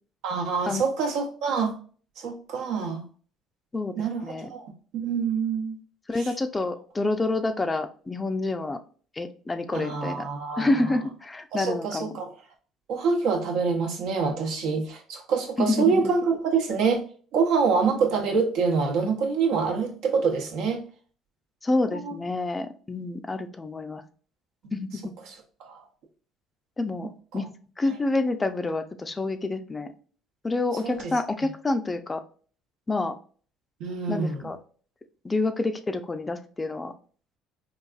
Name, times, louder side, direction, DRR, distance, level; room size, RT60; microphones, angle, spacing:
voice 1, 0.2-1.7 2.2-3.0 4.0-5.8 6.2-6.3 9.7-10.7 11.5-12.3 12.9-17.0 17.3-20.8 21.9-22.2 24.6-24.7 25.3-25.4 25.6-25.8 27.3-27.4 30.8-31.1 33.8-34.5, right 5 dB, 75° right, 1 dB, 0.8 m, -26 dB
voice 2, 4.2-4.5 6.1-8.8 9.2-10.3 10.6-12.1 15.6-16.1 21.6-24.0 24.7-25.1 26.8-27.5 27.8-29.9 30.4-32.2 32.9-33.1 34.1-34.6 35.2-36.9, left 2 dB, 25° left, 8 dB, 0.4 m, -28 dB
3.9 x 2.5 x 2.3 m, 0.42 s
supercardioid pair, 70°, 0 cm